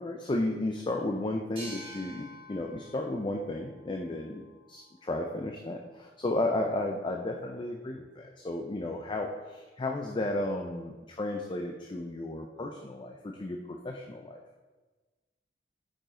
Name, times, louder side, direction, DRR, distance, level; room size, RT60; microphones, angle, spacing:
voice 1, 0.0-4.4 4.7-14.4, left 2 dB, 25° left, 2 dB, 0.5 m, -33 dB
sound 1, 1.6-4.9, equal, 30° right, 2.0 m, -49 dB
9.1 x 5.1 x 3.7 m, 1.3 s
head